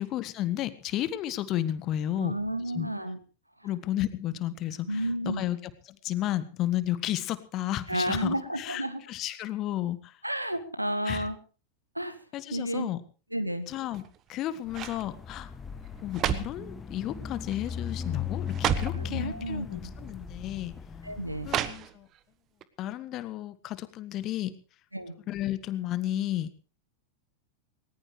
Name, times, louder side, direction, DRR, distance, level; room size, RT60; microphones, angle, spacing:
voice 1, 0.0-2.3 2.7-2.9 3.6-10.2 11.0-11.3 12.3-13.0 13.7-14.0 14.3-15.5 16.0-20.7 21.4-22.1 22.8-24.5 25.3-26.5, left 13 dB, 35° left, 14 dB, 1.6 m, -32 dB
voice 2, 2.2-3.2 4.9-5.5 7.9-9.0 10.2-11.4 12.0-12.2 12.5-12.9 13.3-13.7 18.9-19.9 21.0-21.5 24.9-25.2, right 1 dB, 85° right, 11 dB, 1.9 m, -31 dB
sound 1, 13.9-14.3 14.7-15.1 15.8-16.7 17.5-17.7 18.0-18.1 18.5-19.0 20.0-20.1 21.5-22.2 22.6-22.7, right 10 dB, 30° right, 1.4 m, -31 dB
sound 2, 14.6-21.5, left 8 dB, 15° left, 1.8 m, -38 dB
19.5 x 19.5 x 3.2 m, 0.36 s
figure-of-eight pair, 90°, 0 cm